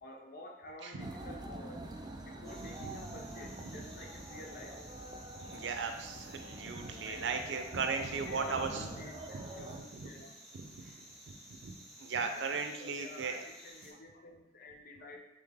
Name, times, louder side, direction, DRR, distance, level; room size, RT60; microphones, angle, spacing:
voice 1, 0.0-1.9 2.2-4.8 7.0-7.2 7.8-10.3 12.3-15.2, left 1 dB, 55° left, 2 dB, 0.6 m, -51 dB
sound 1, 1.0-9.8, right 1 dB, 25° right, 0.3 m, -47 dB
sound 2, 2.4-13.9, right 1 dB, 5° left, 1.4 m, -55 dB
voice 2, 5.4-10.1 10.5-10.9 11.3-11.4 11.6-11.7 12.0-13.4, right 5 dB, 75° right, 6 dB, 0.5 m, -37 dB
3.9 x 3.4 x 3.5 m, 0.96 s
head